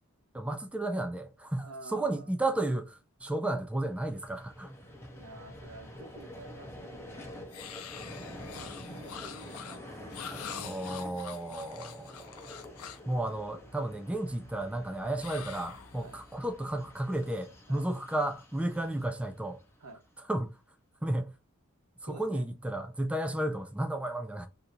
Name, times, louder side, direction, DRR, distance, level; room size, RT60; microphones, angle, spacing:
voice 1, 0.3-4.7 10.6-12.2 13.1-19.6 20.3-20.6 21.0-21.3 22.0-24.5, right 1 dB, 5° right, 0.3 m, -33 dB
voice 2, 1.6-2.3 5.1-7.3 8.2-10.2 16.0-16.2 17.7-17.9 19.8-20.0 22.0-22.4, right 2 dB, 90° right, 0.9 m, -50 dB
Vehicle, 3.8-20.2, left 1 dB, 10° left, 0.7 m, -48 dB
sound 1, 7.5-13.1 15.2-16.4, left 7 dB, 75° left, 0.5 m, -45 dB
2.8 x 2.5 x 4.2 m
head